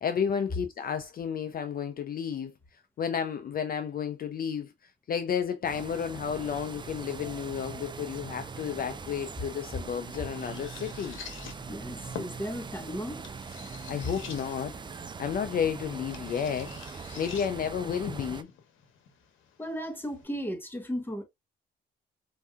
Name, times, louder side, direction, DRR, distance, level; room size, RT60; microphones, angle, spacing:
voice 1, 0.0-11.2 13.7-18.5, left 7 dB, 50° left, 0.5 m, -32 dB
sound 1, 5.6-18.4, right 5 dB, 25° right, 0.4 m, -42 dB
sound 2, 9.3-20.2, left 7 dB, 80° left, 1.0 m, -48 dB
voice 2, 11.7-13.2 19.6-21.2, equal, 10° left, 1.2 m, -35 dB
4.6 x 2.7 x 2.3 m
cardioid pair, 90°, 20 cm